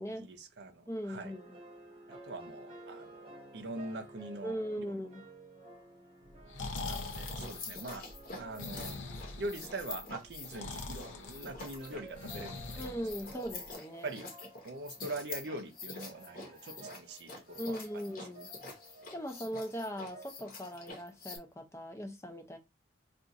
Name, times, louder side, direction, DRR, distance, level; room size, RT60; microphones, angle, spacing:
voice 1, 0.1-1.3 2.1-4.9 6.9-8.1 8.4-9.0 9.4-13.0 13.3-13.5 14.0-14.3 14.6-17.8, right 2 dB, 55° right, 0.5 m, -43 dB
voice 2, 0.9-1.5 4.4-5.2 12.8-14.1 17.6-18.5 19.1-22.6, equal, 15° left, 0.5 m, -39 dB
sound 1, 1.2-20.9, right 2 dB, 25° right, 1.0 m, -55 dB
Breathing, 6.3-13.7, left 3 dB, 75° left, 0.6 m, -43 dB
sound 2, 6.7-21.4, left 3 dB, 45° left, 0.9 m, -47 dB
2.4 x 2.4 x 4.0 m
head